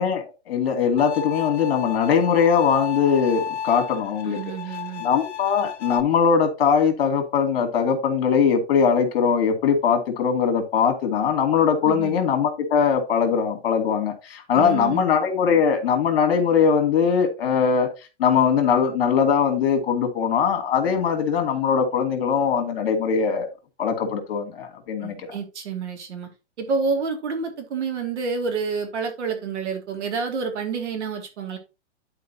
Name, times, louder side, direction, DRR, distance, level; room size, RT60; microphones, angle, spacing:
voice 1, 0.0-4.4 5.0-17.9 18.2-23.5 23.8-25.4, left 6 dB, 55° left, 2.3 m, -21 dB
Bowed string instrument, 1.0-6.0, left 9 dB, 75° left, 1.1 m, -33 dB
voice 2, 4.2-5.0 11.8-12.1 14.5-15.1 25.0-26.3 26.6-31.6, right 5 dB, 75° right, 2.5 m, -28 dB
11.5 x 4.5 x 2.9 m
hypercardioid pair, 160°, 35 cm